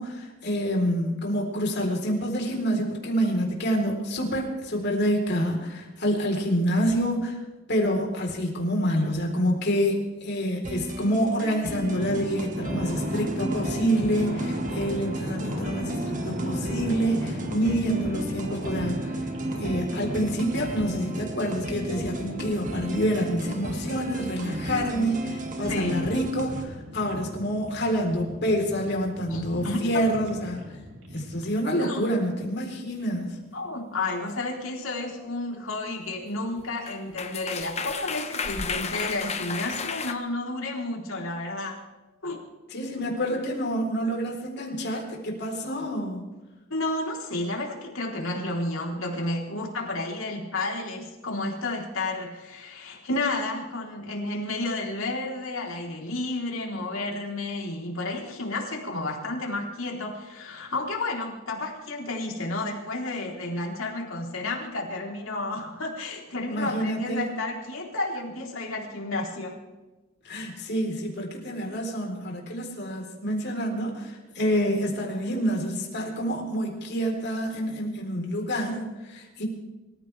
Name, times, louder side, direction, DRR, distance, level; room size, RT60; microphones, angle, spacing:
voice 1, 0.0-7.3 7.7-19.2 19.6-30.6 31.1-33.4 42.7-46.2 66.5-67.2 70.2-79.5, equal, 55° left, 0 dB, 4.1 m, -27 dB
sound 1, 10.6-26.6, right 2 dB, 40° right, 2.0 m, -35 dB
sound 2, 11.9-31.6, equal, 70° right, 3.6 m, -35 dB
voice 2, 25.7-26.1 29.3-29.8 31.8-32.0 33.5-41.8 42.2-42.4 46.7-69.6, left 2 dB, 85° left, -1 dB, 3.9 m, -31 dB
sound 3, 34.8-35.1 36.6-36.7 36.9-40.1, left 5 dB, 30° left, 1.1 m, -33 dB
26.0 x 14.5 x 3.5 m, 1.1 s
head